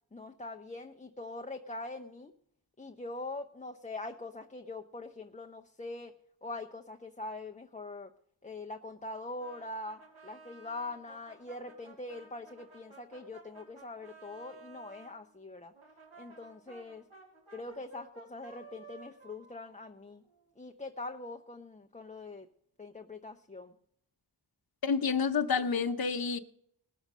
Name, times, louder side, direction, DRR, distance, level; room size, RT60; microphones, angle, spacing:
voice 1, 0.1-2.3 2.8-6.1 6.4-8.1 8.4-15.7 16.2-17.1 17.5-20.2 20.6-22.5 22.8-23.7, left 2 dB, 15° left, 0.7 m, -43 dB
Brass instrument, 9.4-15.1 15.7-20.5, right 4 dB, 80° right, 5.5 m, -55 dB
voice 2, 24.8-26.4, left 5 dB, 45° left, 1.0 m, -29 dB
19.5 x 6.5 x 6.2 m
cardioid pair, 60°, 48 cm